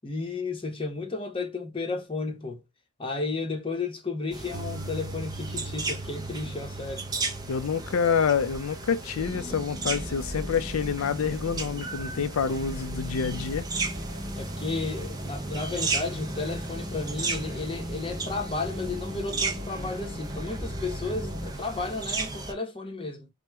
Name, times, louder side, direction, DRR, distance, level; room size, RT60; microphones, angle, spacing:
voice 1, 0.0-2.6 3.0-7.1 14.4-23.3, left 3 dB, 25° left, 0.8 m, -33 dB
sound 1, 4.3-22.5, right 3 dB, 20° right, 0.4 m, -35 dB
Piano, 4.5-12.6, right 2 dB, 70° right, 0.5 m, -43 dB
voice 2, 7.5-13.7, left 6 dB, 70° left, 0.4 m, -27 dB
sound 2, 9.1-21.5, equal, 35° right, 0.9 m, -38 dB
2.9 x 2.1 x 3.3 m
head